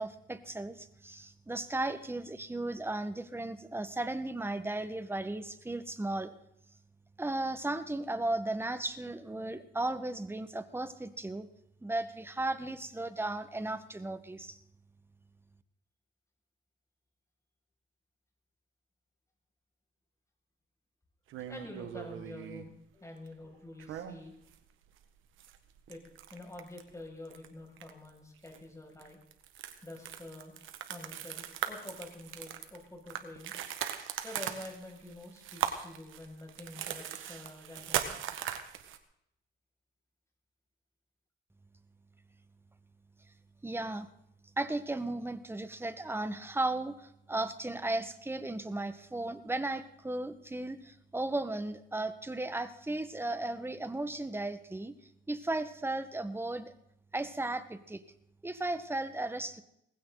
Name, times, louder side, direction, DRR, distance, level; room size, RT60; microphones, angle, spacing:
voice 1, 0.0-6.3 7.2-11.5 11.8-14.6 43.6-44.1 44.6-54.9 55.3-56.7 57.1-58.0 58.4-59.6, right 2 dB, 10° right, 11 dB, 1.4 m, -35 dB
sound 1, 21.3-22.7 23.8-24.5 24.8-25.0 25.4-26.9 27.2-27.5 27.8-28.1 28.5-28.6 29.0-39.0, right 10 dB, 85° right, 1.6 m, -39 dB
voice 2, 21.5-24.3 25.9-26.0 26.3-29.2 29.8-30.5 30.9-33.5 34.2-38.2, left 1 dB, 15° left, 0 dB, 6.6 m, -47 dB
19.5 x 15.5 x 4.0 m, 0.77 s
cardioid pair, 90°, 20 cm